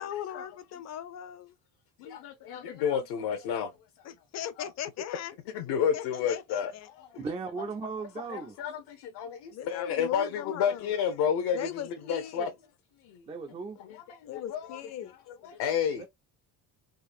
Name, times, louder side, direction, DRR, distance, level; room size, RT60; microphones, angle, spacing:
voice 1, 0.0-1.5 4.0-5.3 5.9-6.9 9.5-11.0 11.5-12.5 14.2-15.1, left 10 dB, 40° left, 0.5 m, -39 dB
voice 2, 2.0-3.7 4.6-4.7 5.5-7.2 8.2-11.8 12.1-12.5 13.0-13.3 13.8-14.8 15.4-16.0, left 8 dB, 70° left, 0.8 m, -31 dB
voice 3, 7.2-8.6 13.3-13.8 16.0-16.1, right 4 dB, 15° right, 0.3 m, -36 dB
3.8 x 2.4 x 2.5 m
cardioid pair, 130°, 41 cm